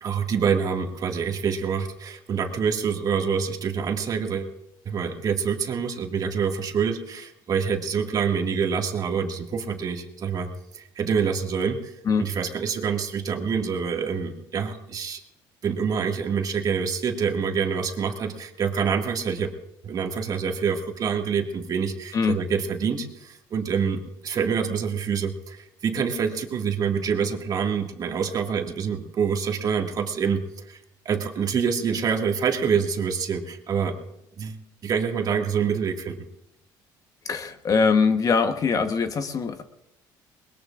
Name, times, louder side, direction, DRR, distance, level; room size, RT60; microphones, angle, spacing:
voice 1, 0.0-4.5 4.9-15.2 15.6-19.5 19.8-30.8 31.1-34.0 34.4-34.6 34.8-36.2, right 6 dB, 45° right, 3 dB, 2.0 m, -26 dB
voice 2, 37.2-39.6, left 5 dB, 40° left, 8 dB, 1.2 m, -22 dB
21.5 x 21.0 x 2.5 m, 0.83 s
cardioid pair, 105°, 9 cm